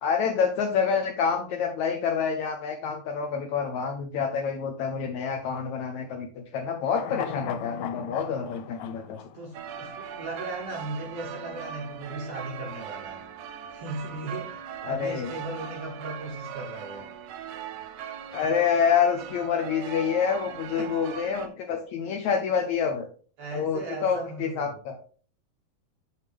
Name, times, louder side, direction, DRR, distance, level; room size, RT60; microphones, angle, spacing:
voice 1, 0.0-9.2 14.8-15.3 18.3-23.1 23.5-25.0, left 6 dB, 75° left, 1.8 m, -27 dB
sound 1, 6.8-10.2 10.5-10.6, left 8 dB, 90° left, 1.6 m, -38 dB
voice 2, 9.3-13.3 13.7-14.6 14.8-17.1 20.7-21.0 21.4-21.5 23.4-24.8, right 2 dB, 70° right, 1.6 m, -37 dB
sound 2, 9.5-21.5, right 8 dB, 85° right, 2.5 m, -40 dB
7.4 x 6.3 x 3.4 m
omnidirectional pair, 4.1 m